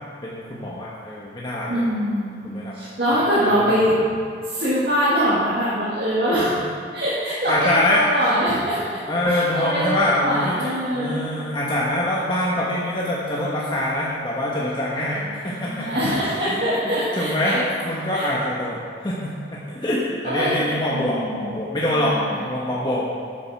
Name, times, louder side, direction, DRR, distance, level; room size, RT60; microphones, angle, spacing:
voice 1, 0.2-1.8 2.4-2.7 3.1-3.7 6.4-6.5 7.5-8.0 9.1-15.9 16.5-23.1, left 1 dB, 25° left, -6 dB, 1.1 m, -25 dB
voice 2, 1.6-3.9 4.5-6.5 6.9-9.0 9.3-11.3 15.1-17.6 18.1-18.3 20.2-21.6 22.1-22.4, equal, 55° right, -10 dB, 2.1 m, -23 dB
sound 1, 9.3-14.2, left 2 dB, 10° left, 0.8 m, -35 dB
8.6 x 7.7 x 5.9 m, 2.2 s
head